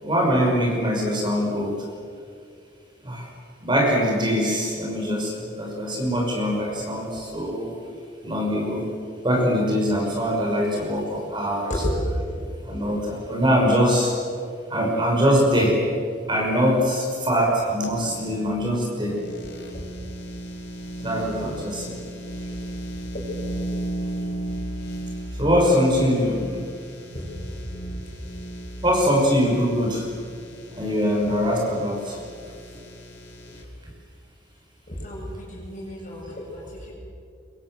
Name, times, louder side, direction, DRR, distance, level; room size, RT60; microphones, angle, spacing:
voice 1, 0.0-1.8 3.0-3.3 3.6-7.7 8.2-8.8 9.2-11.7 12.7-14.1 14.7-15.8 16.3-19.2 21.0-21.9 25.4-26.4 28.8-30.0 30.8-32.2, equal, 25° right, -1 dB, 5.9 m, -22 dB
sound 1, 17.8-33.6, right 1 dB, 65° left, 4.0 m, -36 dB
voice 2, 34.9-36.9, equal, 45° left, -2 dB, 8.0 m, -33 dB
26.0 x 23.0 x 7.8 m, 2.3 s
head